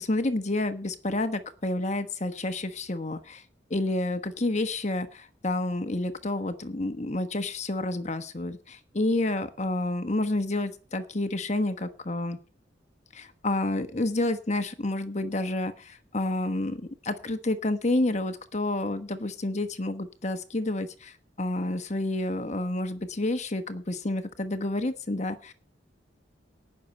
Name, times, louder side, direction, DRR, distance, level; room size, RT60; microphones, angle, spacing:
voice 1, 0.0-3.4 3.7-12.4 13.1-25.5, left 2 dB, 40° left, 9 dB, 1.2 m, -29 dB
19.0 x 6.7 x 5.4 m, 0.38 s
head